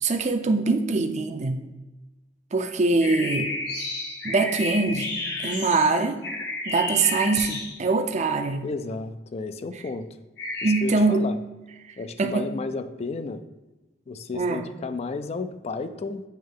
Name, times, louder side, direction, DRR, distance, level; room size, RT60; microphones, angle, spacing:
voice 1, 0.0-1.6 2.5-3.5 4.2-5.1 5.4-6.2 6.7-8.6 10.6-11.2 12.2-12.5 14.3-14.7, right 3 dB, 40° right, 7 dB, 0.5 m, -23 dB
sound 1, 3.0-8.1 10.4-10.8, left 2 dB, 65° left, 1.3 m, -31 dB
voice 2, 8.6-10.1 10.6-11.4 12.0-13.4 14.1-16.2, left 3 dB, 35° left, 10 dB, 0.4 m, -32 dB
8.7 x 3.1 x 3.6 m, 1.1 s
head